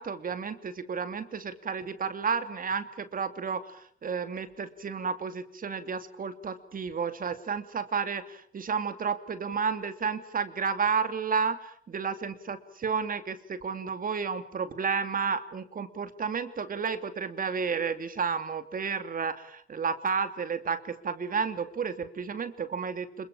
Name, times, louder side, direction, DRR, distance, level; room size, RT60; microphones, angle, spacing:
voice 1, 0.0-23.3, right 5 dB, 45° right, 9 dB, 2.8 m, -32 dB
26.5 x 23.5 x 7.3 m, 0.65 s
cardioid pair, 90°, 20 cm